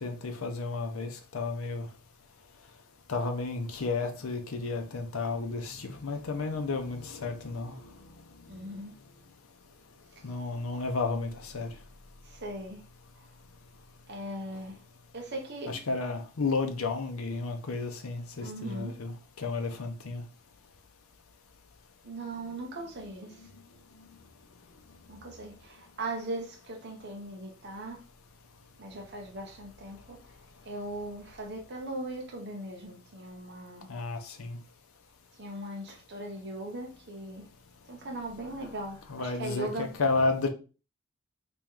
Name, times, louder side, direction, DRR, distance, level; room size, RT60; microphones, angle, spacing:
voice 1, 0.0-1.9 3.1-7.9 10.2-11.7 15.7-20.2 33.9-34.6 39.1-40.5, left 3 dB, 80° left, 0.6 m, -32 dB
voice 2, 8.5-8.9 12.2-12.8 14.1-14.8 15.1-15.7 18.4-18.9 22.0-23.3 25.1-28.0 28.8-30.2 30.7-33.9 35.4-37.5 37.9-39.9, right 1 dB, 55° right, 0.8 m, -39 dB
3.0 x 3.0 x 3.6 m
head